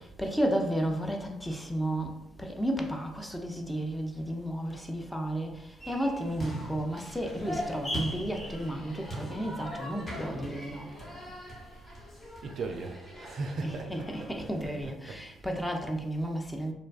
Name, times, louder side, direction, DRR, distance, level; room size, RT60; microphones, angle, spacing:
voice 1, 0.2-10.9 13.6-16.7, right 1 dB, 10° left, 0.5 m, -33 dB
sound 1, 5.8-14.8, equal, 40° left, 1.1 m, -40 dB
voice 2, 12.4-15.2, right 3 dB, 60° right, 0.3 m, -39 dB
2.6 x 2.2 x 2.3 m
hypercardioid pair, 55°, 0 cm